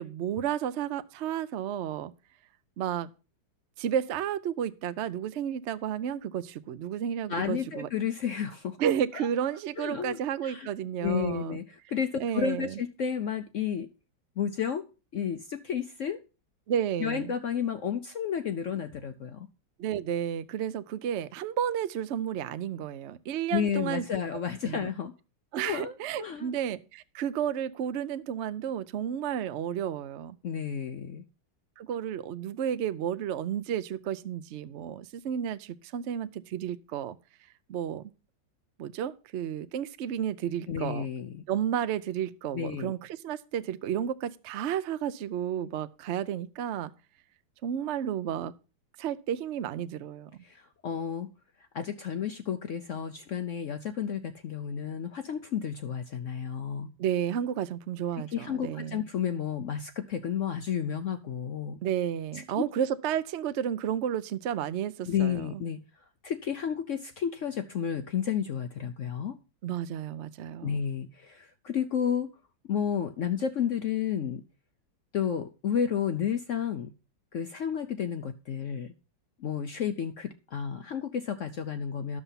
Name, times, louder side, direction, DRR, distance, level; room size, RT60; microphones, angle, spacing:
voice 1, 0.0-2.1 2.8-3.1 3.8-7.9 8.8-11.6 12.2-12.8 16.7-17.3 19.8-24.0 24.6-24.9 25.5-30.4 31.8-37.2 37.7-38.1 38.8-41.1 41.5-46.9 47.6-48.5 49.0-50.3 57.0-59.1 61.8-65.6 69.6-70.8, right 9 dB, 70° right, 0.6 m, -32 dB
voice 2, 7.3-8.8 9.1-9.3 9.8-10.7 11.0-13.9 14.4-14.9 15.1-16.2 17.0-19.5 23.5-25.1 25.6-26.5 30.4-31.2 40.7-41.4 42.5-42.9 50.4-51.3 51.7-56.9 58.3-61.8 62.3-62.6 65.0-65.8 66.2-69.4 70.6-72.3 72.7-74.4 75.1-76.9 77.3-78.9 79.4-82.2, left 8 dB, 70° left, 0.7 m, -31 dB
11.0 x 6.9 x 5.6 m
omnidirectional pair, 2.0 m